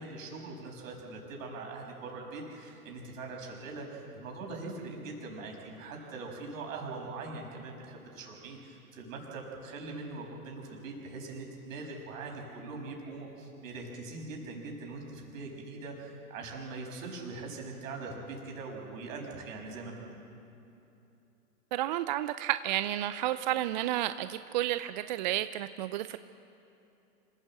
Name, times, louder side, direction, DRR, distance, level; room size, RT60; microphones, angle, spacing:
voice 1, 0.0-20.1, right 3 dB, 55° right, 0 dB, 6.3 m, -42 dB
voice 2, 21.7-26.2, right 13 dB, 30° right, 12 dB, 0.4 m, -31 dB
26.5 x 15.5 x 7.7 m, 2.9 s
hypercardioid pair, 115°, 46 cm